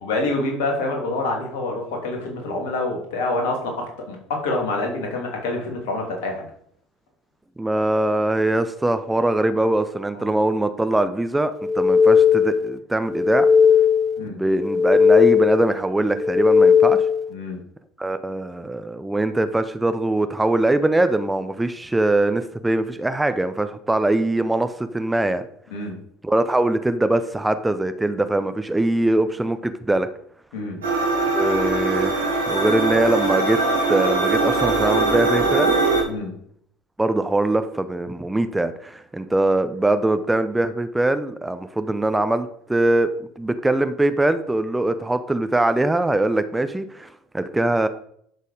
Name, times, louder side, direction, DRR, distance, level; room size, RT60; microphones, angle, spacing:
voice 1, 0.0-6.4 10.1-10.3 14.2-14.4 17.3-17.6 25.7-25.9 30.5-30.8 36.1-36.3, left 2 dB, 65° left, 1 dB, 2.9 m, -26 dB
voice 2, 7.6-13.5 14.3-17.1 18.0-25.4 26.2-30.1 31.3-33.6 33.9-35.8 37.0-43.1 43.4-47.9, right 2 dB, 10° right, 10 dB, 0.8 m, -22 dB
sound 1, 11.6-12.7 13.1-14.2 14.6-15.7 16.1-17.3, left 6 dB, 20° left, 1.2 m, -16 dB
sound 2, 30.8-36.0, right 3 dB, 75° right, 2.3 m, -21 dB
11.0 x 6.7 x 5.0 m, 0.66 s
figure-of-eight pair, 65°, 0 cm